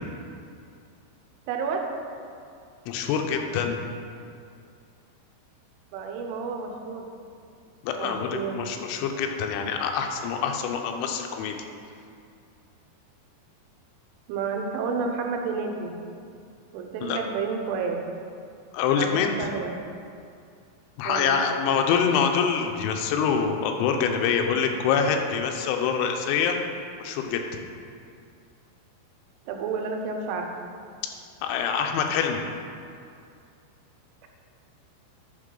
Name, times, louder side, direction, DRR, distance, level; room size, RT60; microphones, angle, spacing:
voice 1, 1.5-1.8 5.9-7.1 8.0-8.6 14.3-15.9 16.7-18.0 19.0-19.7 21.0-21.4 29.5-30.5, right 5 dB, 90° right, 3 dB, 3.2 m, -30 dB
voice 2, 2.9-3.8 7.8-11.6 17.0-17.2 18.7-19.4 21.0-26.6 27.0-27.4 31.4-32.4, left 6 dB, 85° left, 4 dB, 3.0 m, -25 dB
9.8 x 5.5 x 3.8 m, 2.4 s
omnidirectional pair, 5.4 m